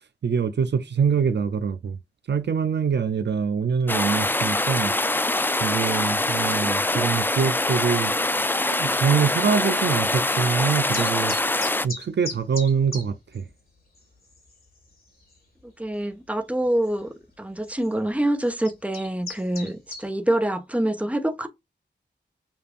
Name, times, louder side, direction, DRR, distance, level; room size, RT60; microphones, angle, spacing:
voice 1, 0.2-2.0 2.3-5.0 5.6-8.1 8.6-11.3 11.8-13.4, right 6 dB, 70° right, 0.5 m, -24 dB
sound 1, 3.9-11.9, left 2 dB, 10° left, 0.4 m, -24 dB
sound 2, 10.9-13.0 13.3-13.4 14.0-14.1 14.3-14.7 15.3-15.4 16.8-16.9 17.7-17.9 18.4-20.0, left 3 dB, 55° left, 2.4 m, -35 dB
voice 2, 15.8-21.5, right 1 dB, 5° right, 1.0 m, -26 dB
7.0 x 2.5 x 2.5 m
cardioid pair, 60°, 19 cm